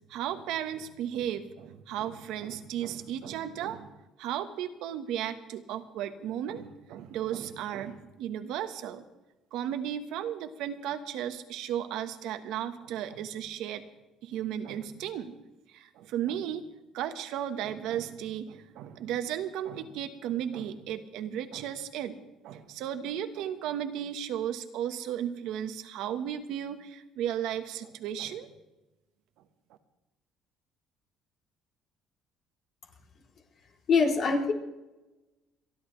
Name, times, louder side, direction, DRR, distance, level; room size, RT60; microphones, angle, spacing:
voice 1, 0.1-3.9 4.2-9.0 9.5-13.8 14.2-15.4 15.7-16.7 16.9-22.2 22.4-28.5, right 10 dB, 80° right, 9 dB, 1.3 m, -35 dB
voice 2, 33.9-34.5, left 4 dB, 50° left, 0 dB, 3.4 m, -23 dB
29.0 x 11.0 x 3.3 m, 1.0 s
cardioid pair, 120°, 0 cm